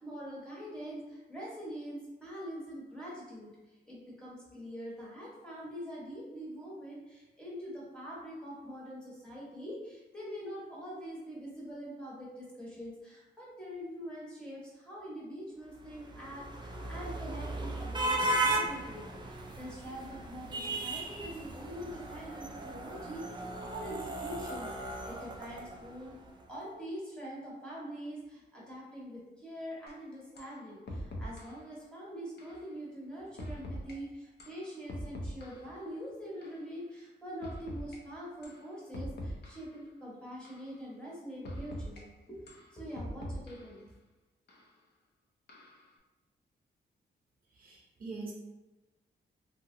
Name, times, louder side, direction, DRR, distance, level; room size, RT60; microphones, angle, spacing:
voice 1, 0.0-3.5 3.9-26.2 26.5-43.9, equal, 5° left, -6 dB, 0.9 m, -44 dB
sound 1, 15.8-26.2, right 2 dB, 25° right, 0.3 m, -36 dB
sound 2, 29.9-30.0 30.4-30.6 30.9-31.6 32.4-32.6 33.4-33.9 34.4-35.8 36.4-36.6 37.4-38.0 38.4-38.6 38.9-39.8 40.4-40.7 41.4-42.0 42.5-43.8 44.5-44.6 45.5-45.9, equal, 60° left, 0.6 m, -42 dB
voice 2, 47.5-48.3, right 3 dB, 45° right, -4 dB, 0.7 m, -43 dB
2.8 x 2.7 x 2.5 m, 1.1 s
wide cardioid pair, 125°, 20 cm